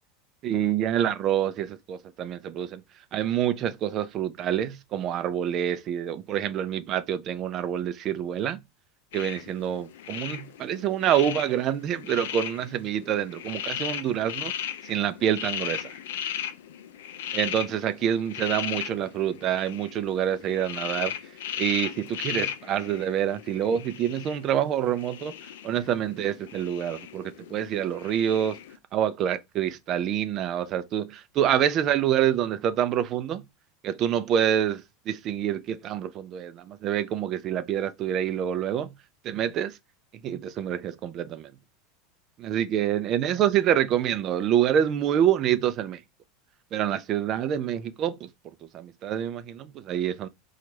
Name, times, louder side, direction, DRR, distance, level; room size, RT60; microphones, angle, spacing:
voice 1, 0.4-2.8 3.1-8.6 9.1-14.5 14.8-15.9 17.3-21.1 21.6-25.3 25.6-28.6 28.9-33.4 33.8-38.9 39.2-39.8 40.2-41.5 42.4-46.0 46.7-48.3 48.7-50.3, right 10 dB, 40° right, 0.5 m, -27 dB
sound 1, 9.1-28.8, left 10 dB, 80° left, 0.5 m, -37 dB
4.4 x 2.4 x 2.9 m
supercardioid pair, 125°, 0 cm